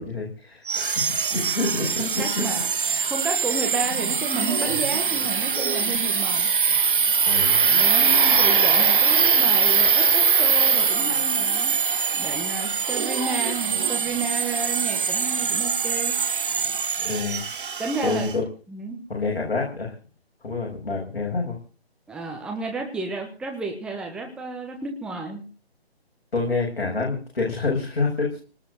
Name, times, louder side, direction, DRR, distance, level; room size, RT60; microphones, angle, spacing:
voice 1, 0.0-2.5 7.3-7.6 17.0-17.4 18.0-18.4 19.1-19.9 20.4-21.6 26.3-28.4, left 3 dB, 60° left, -2 dB, 7.6 m, -27 dB
sound 1, 0.7-18.3, right 6 dB, 55° right, 1.5 m, -22 dB
voice 2, 2.0-2.7 3.1-6.5 7.6-11.7 12.1-16.2 17.8-18.3 18.7-19.0 22.1-25.4, right 3 dB, 5° right, 2 dB, 1.4 m, -32 dB
19.5 x 8.3 x 8.0 m, 0.38 s
figure-of-eight pair, 150°, 32 cm